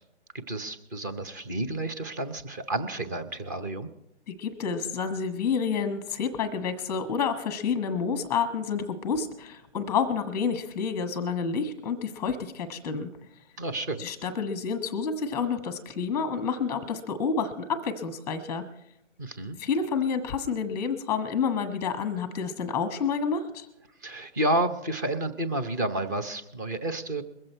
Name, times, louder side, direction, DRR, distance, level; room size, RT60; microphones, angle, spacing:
voice 1, 0.5-3.9 13.6-14.0 19.2-19.6 24.0-27.2, right 1 dB, 15° right, 7 dB, 0.7 m, -30 dB
voice 2, 4.3-13.1 14.0-18.6 19.6-23.7, left 6 dB, 5° left, 8 dB, 1.0 m, -29 dB
22.5 x 7.7 x 4.4 m, 0.80 s
hypercardioid pair, 160°, 35 cm